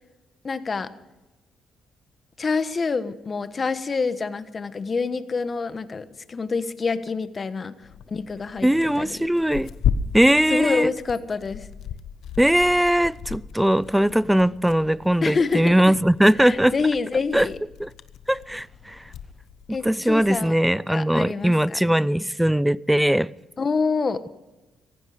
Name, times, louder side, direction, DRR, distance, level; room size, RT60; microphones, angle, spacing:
voice 1, 0.4-0.9 2.4-8.7 8.9-9.2 10.5-11.7 15.2-15.8 16.4-17.6 19.7-20.6 20.9-21.8 23.6-24.2, left 4 dB, 35° left, 1.3 m, -26 dB
Tearing, 7.8-20.4, left 8 dB, 75° left, 1.0 m, -35 dB
voice 2, 8.6-9.7 10.1-10.9 12.4-16.7 17.3-17.5 17.8-17.9 18.3-19.0 19.8-23.3, right 1 dB, 5° right, 0.5 m, -20 dB
17.5 x 15.5 x 5.0 m
cardioid pair, 90°, 0 cm